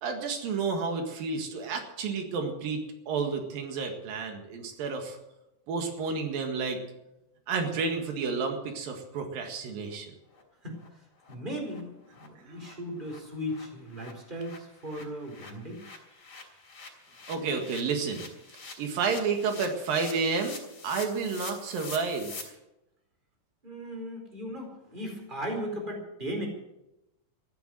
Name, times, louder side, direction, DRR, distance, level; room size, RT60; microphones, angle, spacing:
voice 1, 0.0-5.2 5.7-6.8 7.5-10.1 12.5-12.6 17.3-18.3 18.8-22.5, right 4 dB, 85° right, 4 dB, 3.6 m, -31 dB
sound 1, 9.4-9.5 9.9-10.0 10.3-10.4 10.8-10.9 11.2-11.3 11.6-11.8 12.1-12.3 12.5-22.4, left 4 dB, 40° left, 3.9 m, -46 dB
voice 2, 11.3-15.8 23.6-26.5, equal, 15° right, 2 dB, 4.2 m, -37 dB
14.5 x 12.0 x 7.7 m, 0.92 s
omnidirectional pair, 3.9 m